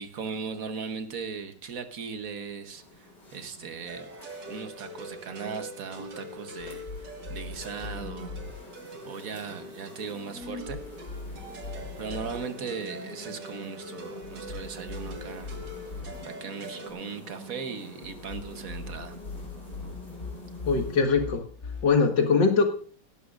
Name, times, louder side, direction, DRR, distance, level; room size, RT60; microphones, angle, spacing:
voice 1, 0.0-3.0 3.3-4.1 4.5-6.9 7.3-8.3 9.0-10.8 12.0-15.5 16.2-19.2, right 5 dB, 55° right, 8 dB, 1.4 m, -38 dB
sound 1, 2.7-21.0, left 1 dB, 25° left, 4.4 m, -46 dB
sound 2, 3.9-16.9, right 1 dB, 80° right, 2.3 m, -44 dB
sound 3, 6.6-8.5 10.4-12.3 14.2-16.1 18.0-21.8, left 4 dB, 40° left, 2.3 m, -40 dB
voice 2, 20.7-21.4 21.8-22.6, left 4 dB, 90° left, 4 dB, 2.2 m, -22 dB
17.5 x 11.0 x 2.5 m, 0.42 s
omnidirectional pair, 1.9 m